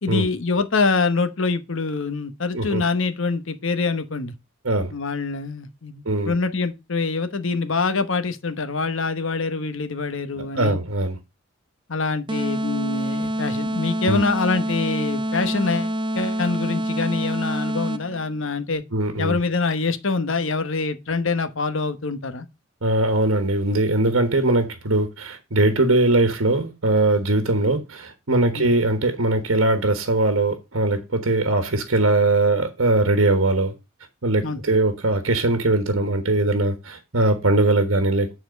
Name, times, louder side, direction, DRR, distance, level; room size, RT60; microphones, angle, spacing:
voice 1, 0.0-4.3 4.9-10.8 11.9-18.8 19.2-22.5 28.6-28.7 34.4-34.6, left 4 dB, 60° left, 1.0 m, -25 dB
voice 2, 10.5-11.2 14.1-14.2 18.9-19.4 22.8-33.7 34.2-38.4, right 2 dB, 65° right, 1.4 m, -21 dB
sound 1, 12.3-18.2, equal, 20° right, 0.5 m, -26 dB
9.5 x 4.3 x 5.1 m
head